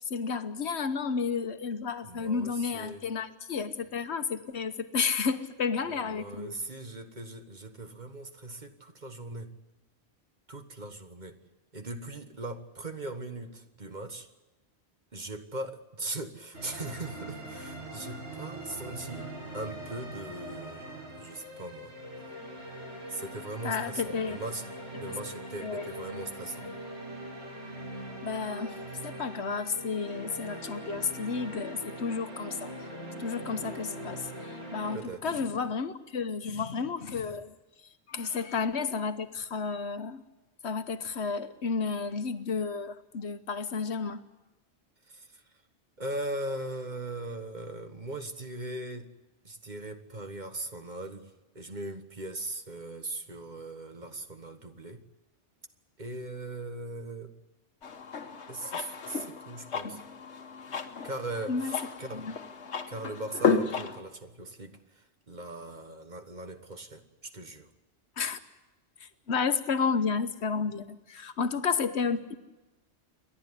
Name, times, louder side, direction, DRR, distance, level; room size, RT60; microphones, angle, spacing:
voice 1, 0.1-6.5 23.6-24.4 25.6-25.9 28.2-32.7 33.2-37.5 38.1-40.2 40.6-44.2 61.5-61.7 62.1-62.3 68.2-68.4 69.0-72.4, left 5 dB, 75° left, 10 dB, 1.3 m, -32 dB
voice 2, 2.0-3.0 5.9-9.5 10.5-11.4 11.7-14.3 15.1-20.9 21.1-21.9 23.1-24.6 24.9-26.7 34.9-35.2 45.1-45.4 46.0-49.1 49.4-55.0 56.0-57.3 58.5-60.0 61.0-62.3 62.9-67.7, right 2 dB, 40° right, 7 dB, 1.5 m, -39 dB
sound 1, 16.5-35.0, right 1 dB, 85° right, 7.5 m, -42 dB
sound 2, 57.8-64.0, left 5 dB, 90° left, 1.5 m, -33 dB
28.5 x 11.5 x 9.9 m, 1.1 s
omnidirectional pair, 1.1 m